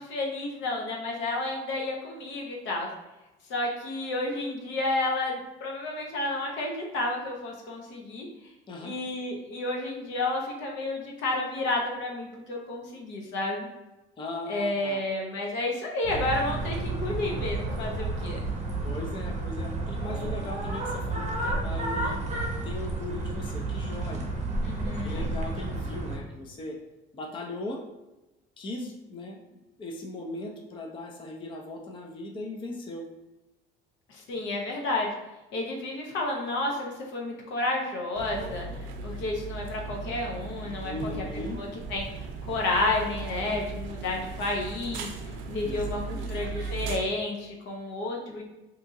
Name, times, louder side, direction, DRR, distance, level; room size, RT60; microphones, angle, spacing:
voice 1, 0.0-2.9 3.5-8.3 8.8-13.7 14.5-18.4 24.6-25.3 34.1-35.1 35.5-38.7 39.0-41.2 41.6-42.1 42.4-48.4, left 2 dB, 75° left, 0 dB, 0.8 m, -31 dB
voice 2, 14.2-15.0 18.8-22.2 22.6-24.3 25.0-26.8 27.1-27.8 28.6-33.1 40.8-41.6 45.6-46.4, left 2 dB, 25° left, 1 dB, 0.5 m, -38 dB
sound 1, 16.0-26.2, right 2 dB, 35° right, 0.8 m, -31 dB
sound 2, 38.1-47.0, right 4 dB, 90° right, 0.5 m, -37 dB
2.8 x 2.5 x 3.7 m, 1.0 s
cardioid pair, 120°, 19 cm